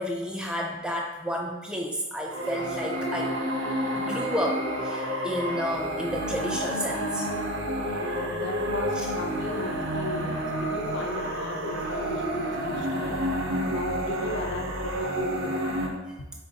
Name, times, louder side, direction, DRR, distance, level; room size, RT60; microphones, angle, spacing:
voice 1, 0.0-3.3 3.9-7.3 9.0-9.1, equal, 5° right, 0 dB, 0.4 m, -31 dB
sound 1, 2.2-15.9, equal, 65° right, 0.5 m, -30 dB
voice 2, 8.0-13.2 13.7-15.6, left 2 dB, 60° left, 3 dB, 0.5 m, -36 dB
3.9 x 2.5 x 3.9 m, 1.1 s
head